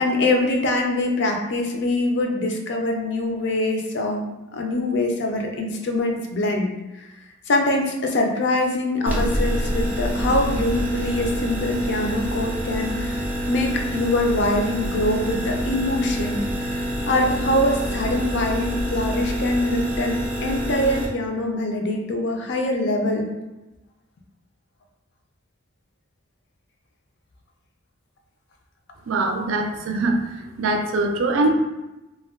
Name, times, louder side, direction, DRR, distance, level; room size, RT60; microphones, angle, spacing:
voice 1, 0.0-4.2 4.5-6.7 7.5-23.3, left 1 dB, 60° left, 2 dB, 0.4 m, -24 dB
sound 1, 9.1-21.1, equal, 10° right, 0.3 m, -26 dB
voice 2, 29.1-31.5, right 2 dB, 85° right, 4 dB, 0.4 m, -23 dB
2.2 x 2.2 x 3.5 m, 1.0 s
head